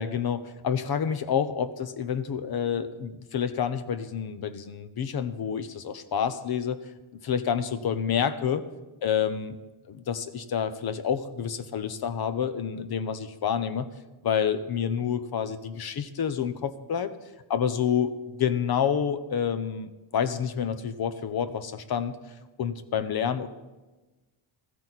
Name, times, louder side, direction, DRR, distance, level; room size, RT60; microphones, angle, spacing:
voice 1, 0.0-6.8 7.1-8.6 9.0-9.6 9.9-13.9 14.2-17.1 17.5-18.1 18.4-22.1 22.6-23.5, left 8 dB, 50° left, 12 dB, 0.9 m, -28 dB
14.5 x 13.5 x 4.1 m, 1.1 s
cardioid pair, 130°, 50 cm